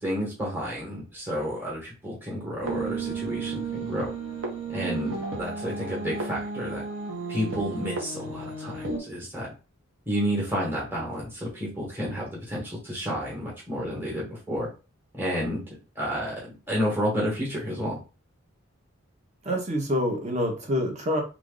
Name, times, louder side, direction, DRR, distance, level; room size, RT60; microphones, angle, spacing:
voice 1, 0.0-4.1 4.7-6.8 7.3-9.5 10.1-14.7 15.2-15.6 15.9-16.3 16.7-18.0, equal, 10° right, -5 dB, 1.2 m, -30 dB
sound 1, 2.6-9.0, right 4 dB, 70° right, 0.9 m, -33 dB
voice 2, 19.4-21.2, equal, 35° right, 3 dB, 0.8 m, -26 dB
3.0 x 2.5 x 3.8 m, 0.32 s
head